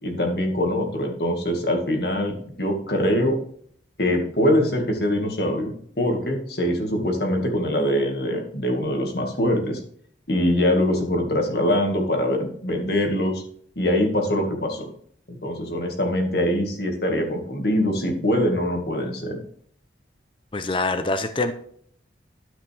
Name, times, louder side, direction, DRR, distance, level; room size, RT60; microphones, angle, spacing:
voice 1, 0.0-3.4 4.0-9.8 10.3-13.4 13.8-14.9 15.4-19.4, left 1 dB, 60° left, 3 dB, 2.0 m, -23 dB
voice 2, 20.5-21.5, left 2 dB, 30° left, 9 dB, 0.7 m, -24 dB
13.0 x 5.8 x 3.5 m, 0.62 s
head